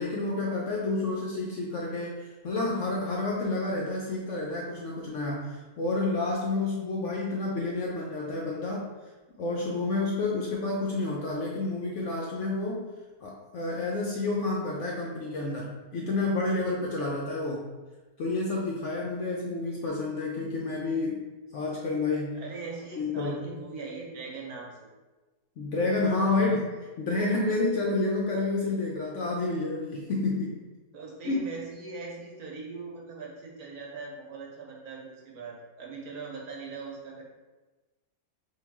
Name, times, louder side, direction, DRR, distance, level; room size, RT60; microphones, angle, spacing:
voice 1, 0.0-8.8 9.4-12.9 13.2-17.6 18.2-21.2 21.5-22.4 23.0-23.4 25.6-30.6 31.2-31.4, left 2 dB, 65° left, -3 dB, 0.8 m, -29 dB
voice 2, 22.3-24.9 26.3-26.6 30.9-37.2, right 4 dB, 65° right, -2 dB, 1.3 m, -40 dB
3.7 x 2.4 x 4.6 m, 1.2 s
omnidirectional pair, 1.7 m